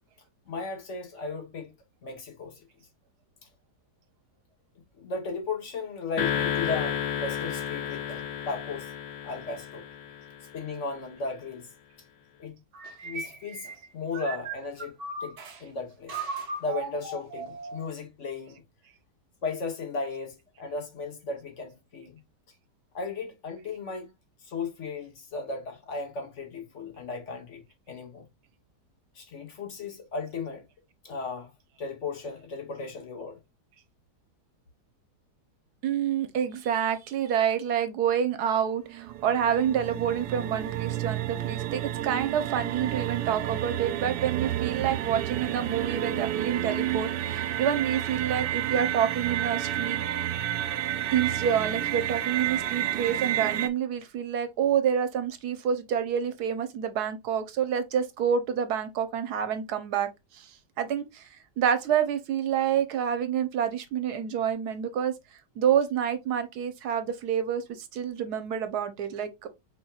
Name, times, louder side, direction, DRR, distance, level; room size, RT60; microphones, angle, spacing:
voice 1, 0.5-1.7 2.0-2.6 5.0-8.9 9.2-9.8 10.5-11.7 12.4-12.6 13.0-13.7 13.9-14.9 15.2-16.2 16.6-18.6 19.4-22.2 22.9-24.1 24.5-27.6 27.9-28.3 29.1-30.7 31.0-31.5 31.8-33.4, left 4 dB, 50° left, 1.2 m, -35 dB
sound 1, 6.2-10.7, left 8 dB, 90° left, 1.6 m, -32 dB
sound 2, 12.7-15.6 16.1-17.9, right 3 dB, 45° right, 0.8 m, -37 dB
voice 2, 35.8-50.0 51.1-60.1 60.3-61.3 61.6-65.1 65.6-69.5, right 8 dB, 70° right, 1.2 m, -28 dB
sound 3, 38.7-53.7, right 11 dB, 90° right, 1.2 m, -30 dB
4.5 x 4.3 x 2.3 m
omnidirectional pair, 1.8 m